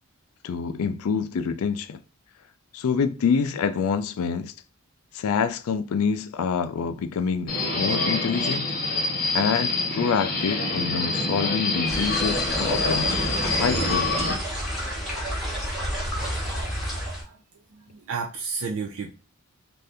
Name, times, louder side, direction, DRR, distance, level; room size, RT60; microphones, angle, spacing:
voice 1, 0.4-2.0 2.7-4.5 5.1-8.7 9.3-13.2 13.6-14.2, left 6 dB, 75° left, 0.3 m, -26 dB
Subway metro underground, 7.5-14.3, left 2 dB, 40° left, 0.8 m, -26 dB
sound 1, 11.9-17.2, equal, ahead, 1.0 m, -30 dB
voice 2, 17.2-19.1, right 5 dB, 65° right, 0.4 m, -33 dB
2.7 x 2.5 x 3.4 m
head